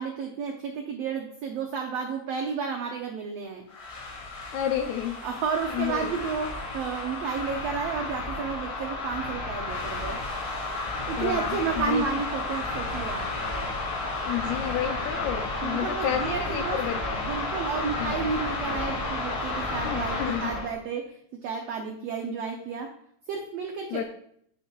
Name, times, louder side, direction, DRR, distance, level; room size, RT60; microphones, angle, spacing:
voice 1, 0.0-3.6 5.2-10.2 11.1-13.3 15.6-16.8 17.2-22.9 23.3-24.0, right 6 dB, 90° right, 2 dB, 1.4 m, -32 dB
sound 1, 3.7-20.7, left 2 dB, 55° left, 4.0 m, -32 dB
voice 2, 4.5-5.3 5.7-6.1 11.2-12.1 14.3-17.3 18.0-18.2 19.8-20.6 23.9-24.0, left 10 dB, 80° left, 5 dB, 1.8 m, -31 dB
8.8 x 8.1 x 2.3 m, 0.67 s
omnidirectional pair, 3.9 m